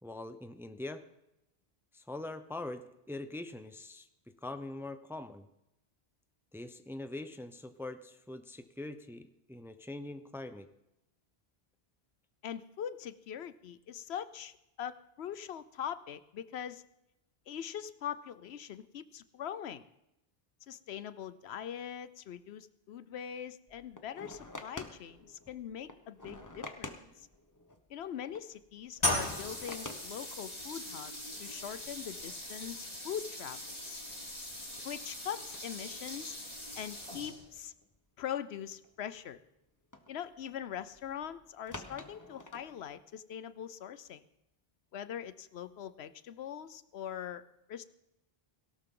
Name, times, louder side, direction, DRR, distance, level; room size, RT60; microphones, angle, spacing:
voice 1, 0.0-1.0 1.9-4.1 4.4-5.5 6.5-10.7 27.0-27.1, left 2 dB, 5° right, 10 dB, 0.6 m, -43 dB
voice 2, 12.4-16.8 17.5-19.8 20.7-27.3 27.9-33.6 33.9-34.0 34.8-36.4 36.7-37.7 38.2-39.4 40.1-44.2 44.9-47.4 47.7-47.8, left 9 dB, 90° left, 14 dB, 1.0 m, -42 dB
sound 1, 23.7-30.8 31.2-31.5 31.9-32.0 32.5-33.0 33.4-33.5 34.0-34.4 34.8-35.2 35.5-36.2 37.0-38.0 38.3-39.1 39.9-43.0, left 2 dB, 20° left, 1.0 m, -49 dB
sound 2, 29.0-37.6, left 1 dB, 40° left, 3.9 m, -39 dB
17.5 x 17.5 x 3.8 m, 0.87 s
omnidirectional pair, 1.0 m